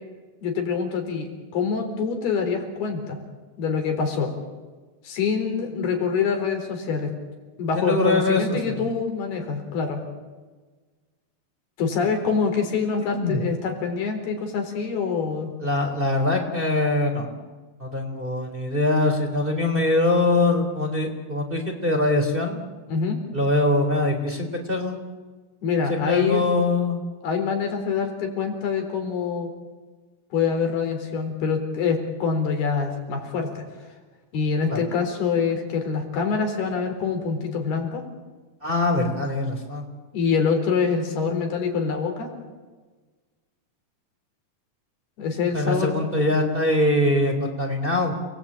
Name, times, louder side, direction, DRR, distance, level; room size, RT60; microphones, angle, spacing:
voice 1, 0.4-3.2 3.6-4.3 5.0-7.1 7.6-10.0 11.8-15.5 22.9-23.2 25.6-26.5 27.2-29.5 30.3-33.6 34.3-38.0 40.1-42.3 45.2-46.1, left 5 dB, 90° left, 4 dB, 6.0 m, -25 dB
voice 2, 7.7-8.8 13.0-13.4 15.6-17.3 17.8-22.6 23.3-25.0 25.9-27.0 34.7-34.8 38.6-39.8 45.5-48.1, left 2 dB, 15° right, 3 dB, 3.3 m, -23 dB
29.5 x 20.0 x 8.7 m, 1.3 s
omnidirectional pair, 4.4 m